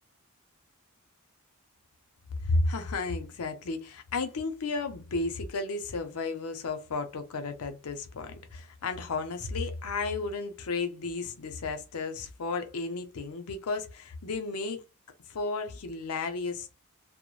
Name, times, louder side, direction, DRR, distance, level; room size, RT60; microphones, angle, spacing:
voice 1, 2.4-14.8 15.3-16.7, left 3 dB, 80° left, 0.6 m, -33 dB
2.2 x 2.1 x 3.0 m
head